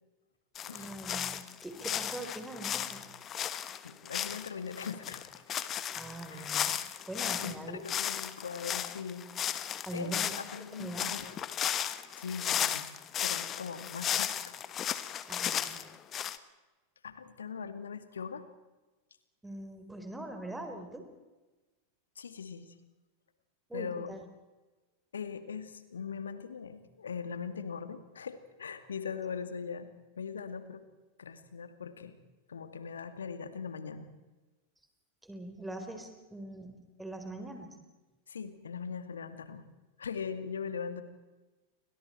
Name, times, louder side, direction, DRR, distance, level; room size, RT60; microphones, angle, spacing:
sound 1, 0.6-7.6 7.9-16.4, left 10 dB, 30° left, 1.3 m, -35 dB
voice 1, 0.7-3.1 5.9-6.8 7.1-7.8 9.9-10.3 10.8-11.3 15.3-15.8 19.4-21.1 23.7-24.2 35.2-37.7, right 1 dB, 5° right, 5 dB, 4.2 m, -42 dB
voice 2, 3.8-5.3 6.3-6.5 7.4-9.3 9.9-11.3 12.2-12.9 13.2-14.6 17.0-18.4 22.2-22.7 23.7-24.1 25.1-29.9 30.2-30.8 31.2-32.2 32.5-34.1 38.3-39.7 40.0-41.0, left 6 dB, 70° left, 10 dB, 2.1 m, -40 dB
29.5 x 25.0 x 4.5 m, 1.2 s
figure-of-eight pair, 90°, 0 cm